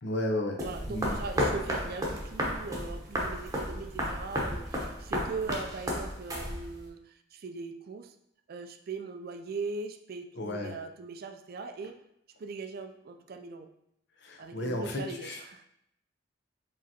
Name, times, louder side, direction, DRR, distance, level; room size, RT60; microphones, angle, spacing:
voice 1, 0.0-0.6 0.9-1.2 10.4-10.7 14.2-15.4, left 1 dB, 65° left, 2 dB, 0.7 m, -33 dB
Running Loud, 0.6-6.9, equal, 20° right, 0.9 m, -33 dB
voice 2, 0.6-8.1 8.5-11.9 12.4-13.7 14.4-15.7, right 4 dB, 55° right, 6 dB, 0.4 m, -40 dB
4.9 x 3.5 x 2.8 m, 0.77 s
head